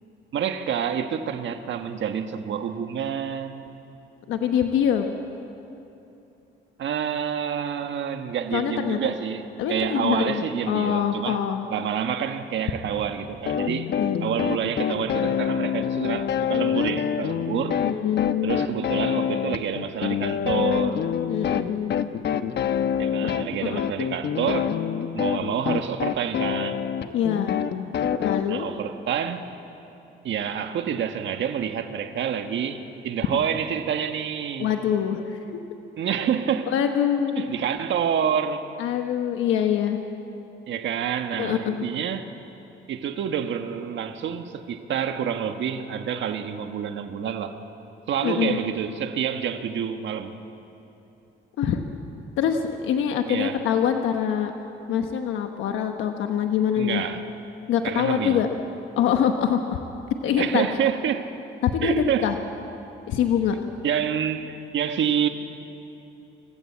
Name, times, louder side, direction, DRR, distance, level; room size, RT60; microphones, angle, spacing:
voice 1, 0.3-3.8 6.8-11.4 11.7-13.9 14.2-17.8 18.4-21.0 23.0-24.7 25.1-26.8 28.5-29.5 30.2-34.7 36.0-36.7 37.4-38.7 40.7-42.3 42.9-47.6 48.1-50.3 53.2-53.6 56.8-57.2 57.8-58.4 60.4-61.3 61.8-62.3 63.8-65.3, right 8 dB, 70° right, 7 dB, 1.5 m, -28 dB
voice 2, 4.3-5.1 8.5-9.1 9.6-11.7 13.9-14.3 17.8-18.8 21.3-22.1 23.2-23.9 27.1-27.6 28.2-28.7 34.6-35.6 36.7-37.5 38.8-40.0 41.4-41.8 48.2-48.6 51.6-51.8 52.4-54.5 54.9-57.0 57.7-58.5 59.0-59.8 60.2-60.7 61.6-62.4 63.1-63.6, left 9 dB, 90° left, 5 dB, 1.2 m, -24 dB
sound 1, 13.5-28.4, left 8 dB, 60° left, 0.9 m, -26 dB
26.5 x 15.0 x 8.5 m, 2.9 s
cardioid pair, 90°, 20 cm